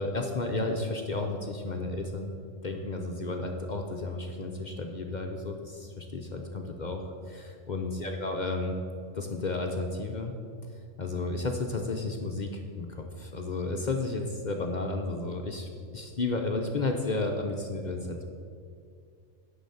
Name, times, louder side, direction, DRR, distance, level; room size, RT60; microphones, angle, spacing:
voice 1, 0.0-2.3 2.6-8.8 9.1-10.4 11.0-18.2, left 3 dB, 45° left, 3 dB, 0.7 m, -32 dB
11.0 x 4.0 x 7.7 m, 2.3 s
omnidirectional pair, 1.3 m